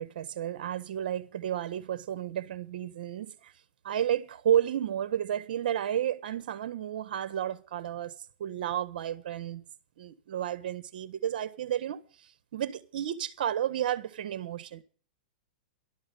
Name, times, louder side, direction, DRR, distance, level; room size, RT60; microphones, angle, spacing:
voice 1, 0.0-3.5 3.8-8.1 8.4-9.6 10.0-12.0 12.5-14.8, right 10 dB, 70° right, 1.4 m, -32 dB
13.0 x 12.5 x 5.5 m
hypercardioid pair, 135°, 5 cm